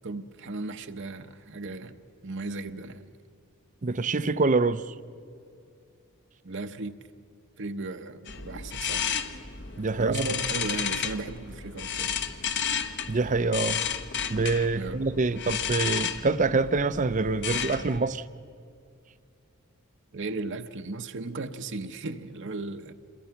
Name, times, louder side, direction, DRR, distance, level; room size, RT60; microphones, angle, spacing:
voice 1, 0.0-3.1 6.4-7.0 7.6-9.1 10.0-12.2 14.7-15.0 20.1-22.9, right 3 dB, 55° right, 0.9 m, -36 dB
voice 2, 3.8-4.9 9.8-10.2 13.1-13.8 14.3-18.2, right 3 dB, 35° right, 0.6 m, -25 dB
sound 1, 8.3-18.0, left 7 dB, 55° left, 1.2 m, -32 dB
28.0 x 22.0 x 5.9 m
head